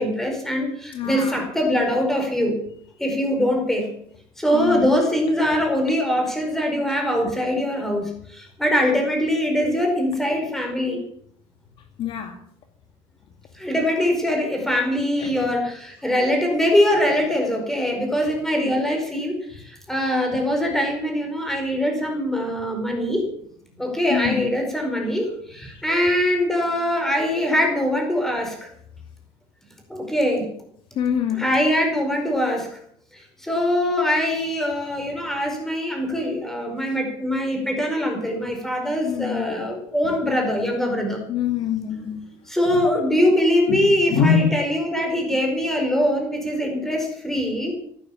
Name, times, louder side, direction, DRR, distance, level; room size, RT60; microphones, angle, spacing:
voice 1, 0.0-2.6 3.0-3.9 4.4-11.0 13.5-23.3 23.8-28.7 29.9-30.5 31.4-32.8 33.1-41.2 42.5-47.7, equal, 5° left, 2 dB, 4.9 m, -22 dB
voice 2, 0.9-1.4 4.5-4.9 12.0-12.3 15.2-15.5 24.1-24.6 31.0-31.4 39.0-39.6 41.3-42.2 42.7-42.8 43.7-44.5, left 7 dB, 50° left, 5 dB, 2.2 m, -24 dB
16.0 x 11.5 x 7.2 m, 0.64 s
cardioid pair, 150°, 11 cm